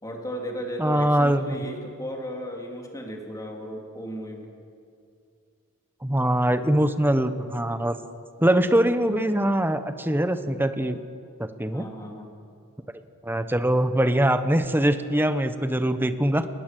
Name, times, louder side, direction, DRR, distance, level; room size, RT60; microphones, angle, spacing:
voice 1, 0.0-4.5 11.7-12.3, equal, 15° left, 1 dB, 3.1 m, -35 dB
voice 2, 0.8-1.5 6.0-8.0 8.4-11.0 11.4-11.9 13.2-16.5, right 1 dB, 10° right, 10 dB, 1.0 m, -23 dB
21.0 x 19.5 x 7.7 m, 2.4 s
head